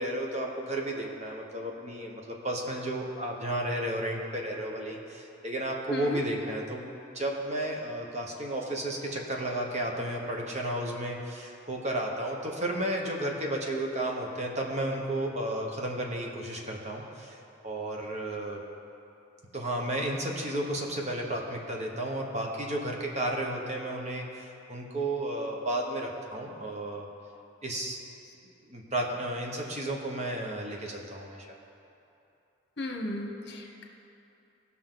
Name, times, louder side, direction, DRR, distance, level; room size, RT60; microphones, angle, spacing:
voice 1, 0.0-17.4 17.6-18.6 19.5-27.1 27.6-28.0 28.7-31.5, right 1 dB, 35° right, 0 dB, 1.2 m, -33 dB
voice 2, 5.9-6.2 32.8-33.8, left 1 dB, 60° left, 1 dB, 1.1 m, -35 dB
17.5 x 6.0 x 3.9 m, 2.8 s
head